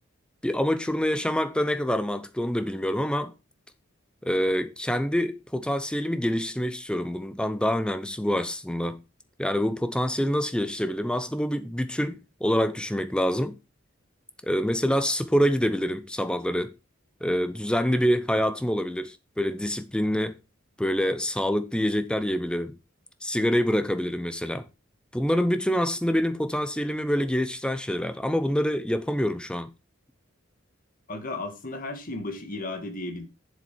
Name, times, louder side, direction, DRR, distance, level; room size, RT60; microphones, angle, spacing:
voice 1, 0.4-3.3 4.2-9.0 9.4-13.6 14.4-16.7 17.2-20.4 20.8-22.8 23.2-24.7 25.1-29.7, equal, 5° left, 0.7 m, -26 dB
voice 2, 31.1-33.3, left 2 dB, 45° left, 1.8 m, -34 dB
7.5 x 7.2 x 4.5 m
head